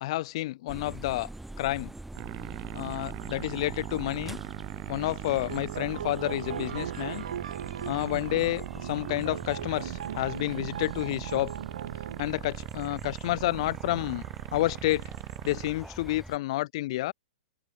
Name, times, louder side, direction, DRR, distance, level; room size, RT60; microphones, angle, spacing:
voice 1, 0.0-1.3 1.6-1.9 2.7-4.4 4.9-7.2 7.8-11.5 12.2-14.2 14.5-15.1 15.4-17.1, left 17 dB, 50° left, 0.7 m, -30 dB
sound 1, 0.7-16.4, right 2 dB, 5° right, 5.7 m, -45 dB
sound 2, 2.1-15.7, right 38 dB, 40° right, 1.5 m, -40 dB
sound 3, 5.5-12.2, right 8 dB, 70° right, 0.8 m, -39 dB
open air
figure-of-eight pair, 110°, 4 cm